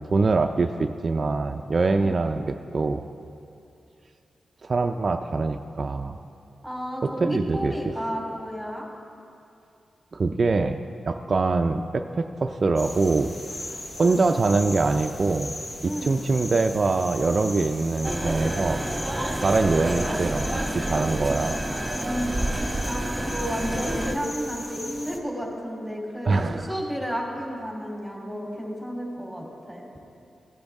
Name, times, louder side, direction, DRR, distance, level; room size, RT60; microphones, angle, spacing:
voice 1, 0.0-3.0 4.6-6.1 7.0-7.7 10.1-10.8 11.1-13.3 14.0-15.5 16.0-18.8 19.3-21.6 26.2-26.7, right 3 dB, 55° right, 6 dB, 0.4 m, -24 dB
voice 2, 6.6-8.9 15.8-16.1 22.0-29.9, equal, 5° left, -1 dB, 3.2 m, -32 dB
sound 1, 12.8-25.2, left 1 dB, 40° left, 1.1 m, -38 dB
sound 2, 18.0-24.1, right 1 dB, 15° right, 1.4 m, -29 dB
16.5 x 10.0 x 3.6 m, 2.6 s
cardioid pair, 50°, 0 cm